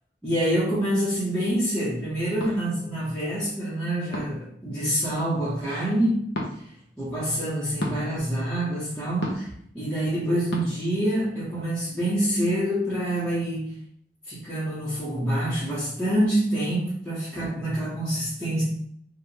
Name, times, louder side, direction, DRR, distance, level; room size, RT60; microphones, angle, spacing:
voice 1, 0.2-6.3 7.0-13.7 14.3-18.6, right 1 dB, 5° left, -12 dB, 1.2 m, -26 dB
sound 1, 2.4-2.6 4.1-4.5 6.3-6.5 7.8-8.0 9.2-9.5 10.5-10.6, left 1 dB, 70° left, 0.9 m, -30 dB
4.7 x 2.5 x 3.3 m, 0.67 s
head